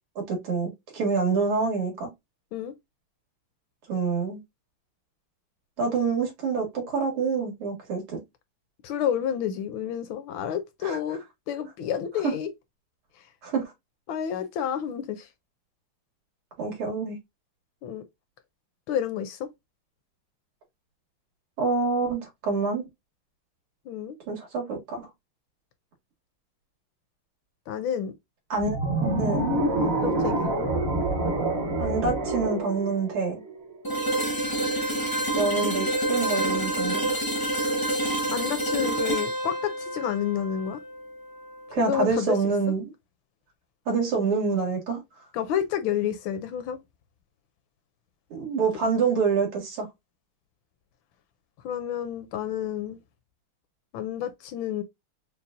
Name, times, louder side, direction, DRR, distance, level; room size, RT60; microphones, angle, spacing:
voice 1, 0.3-2.1 3.9-4.4 5.8-8.2 10.8-11.0 12.2-12.3 13.4-13.6 16.6-17.2 21.6-22.9 24.3-25.1 28.5-29.5 31.8-33.4 35.4-37.1 41.7-42.9 43.9-45.0 48.3-49.9, right 4 dB, 80° right, 2.6 m, -26 dB
voice 2, 8.8-12.5 14.1-15.3 17.8-18.0 18.9-19.5 23.9-24.2 27.7-28.1 29.8-30.5 38.3-40.8 41.8-42.4 45.3-46.8 51.6-53.0 53.9-54.8, left 9 dB, 75° left, 1.2 m, -30 dB
sound 1, 28.6-33.8, right 2 dB, 55° right, 0.6 m, -27 dB
sound 2, 33.8-41.7, right 1 dB, 30° left, 0.4 m, -28 dB
5.4 x 2.2 x 2.5 m
omnidirectional pair, 2.4 m